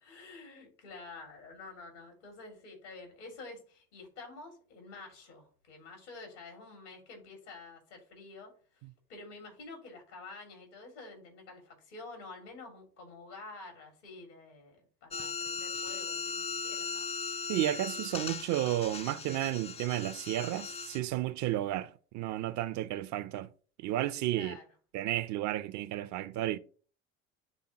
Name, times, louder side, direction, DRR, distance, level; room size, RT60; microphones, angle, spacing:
voice 1, 0.0-8.8 9.1-17.1 24.3-24.7, left 3 dB, 75° left, 2.5 m, -49 dB
sound 1, 15.1-21.0, left 5 dB, 20° left, 0.4 m, -38 dB
voice 2, 17.5-23.5 23.8-24.6 24.9-26.6, right 14 dB, 50° right, 0.5 m, -32 dB
9.9 x 3.5 x 2.8 m
hypercardioid pair, 70°, 36 cm